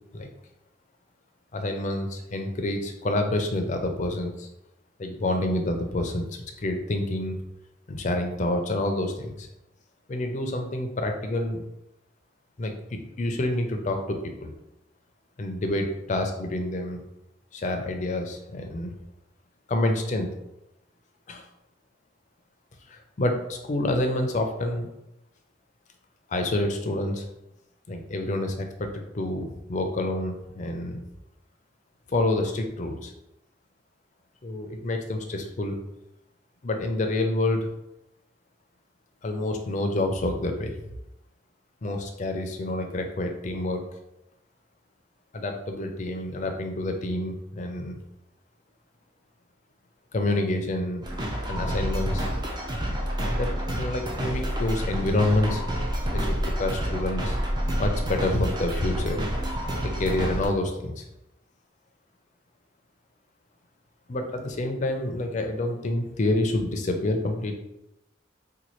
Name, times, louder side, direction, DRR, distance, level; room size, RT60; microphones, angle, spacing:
voice 1, 1.5-4.5 5.0-7.4 7.9-9.5 10.1-11.6 12.6-14.5 15.4-17.0 17.5-18.9 19.7-20.3 21.3-21.4 22.9-24.9 26.3-27.3 27.9-31.0 32.1-33.1 34.4-35.8 36.6-37.7 39.2-40.9 41.8-43.8 45.3-48.0 50.1-51.1 51.5-52.2 53.3-55.6 56.1-57.4 57.8-59.2 59.8-61.1 64.1-67.5, left 1 dB, 40° left, 4 dB, 0.5 m, -28 dB
sound 1, 51.0-60.5, equal, 25° right, 0.5 m, -28 dB
4.1 x 2.2 x 3.1 m, 0.88 s
head